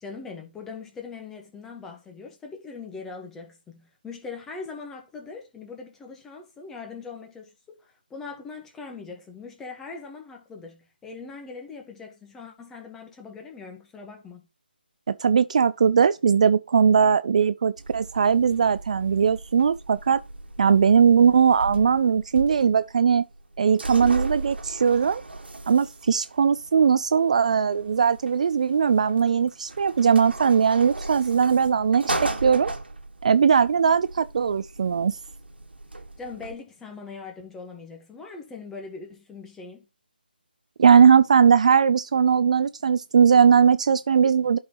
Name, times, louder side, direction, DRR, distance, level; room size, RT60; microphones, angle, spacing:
voice 1, 0.0-14.4 36.2-39.9, left 4 dB, 5° left, 1.3 m, -41 dB
voice 2, 15.1-20.2 20.6-23.2 23.6-25.2 25.7-32.7 33.2-35.2 40.8-44.6, right 6 dB, 40° right, 0.3 m, -19 dB
sound 1, 17.8-36.5, right 2 dB, 80° right, 1.5 m, -37 dB
11.0 x 5.4 x 3.0 m
figure-of-eight pair, 155°, 6 cm